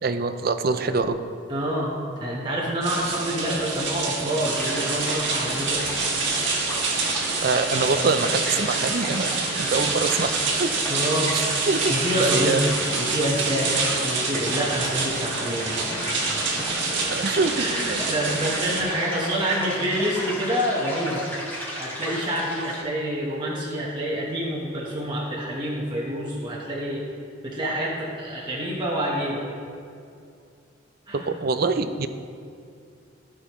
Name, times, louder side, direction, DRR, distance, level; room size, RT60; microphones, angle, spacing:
voice 1, 0.0-1.2 7.4-10.7 11.3-11.9 12.2-12.6 15.4-15.5 17.1-18.0 31.4-32.1, right 4 dB, 50° right, 10 dB, 0.5 m, -25 dB
voice 2, 1.5-6.0 10.9-11.4 11.9-16.2 16.6-16.7 17.6-21.3 21.8-27.0 27.4-29.5 31.1-31.3, equal, 25° right, -5 dB, 1.2 m, -27 dB
sound 1, 2.8-18.8, right 4 dB, 70° right, 1.6 m, -27 dB
sound 2, 4.4-22.8, left 1 dB, 10° left, 1.9 m, -34 dB
15.0 x 6.3 x 3.1 m, 2.5 s
head